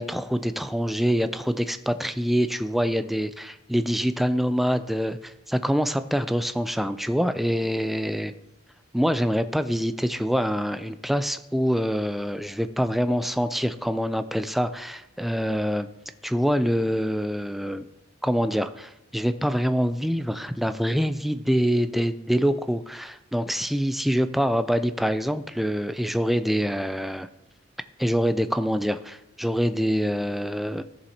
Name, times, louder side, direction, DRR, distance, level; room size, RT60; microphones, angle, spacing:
voice 1, 0.0-8.3 8.9-15.9 16.2-17.8 18.2-27.3 28.0-30.8, equal, ahead, 10 dB, 0.4 m, -25 dB
16.0 x 7.0 x 2.9 m, 0.88 s
head